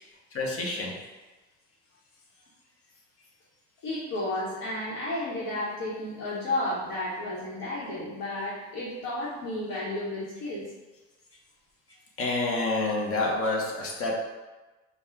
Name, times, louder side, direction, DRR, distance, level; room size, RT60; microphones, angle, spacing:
voice 1, 0.3-0.9 12.2-14.2, left 2 dB, 45° left, -2 dB, 1.0 m, -28 dB
voice 2, 3.8-10.7, left 1 dB, 80° left, -9 dB, 1.1 m, -32 dB
3.6 x 2.3 x 4.4 m, 1.2 s
cardioid pair, 95°, 32 cm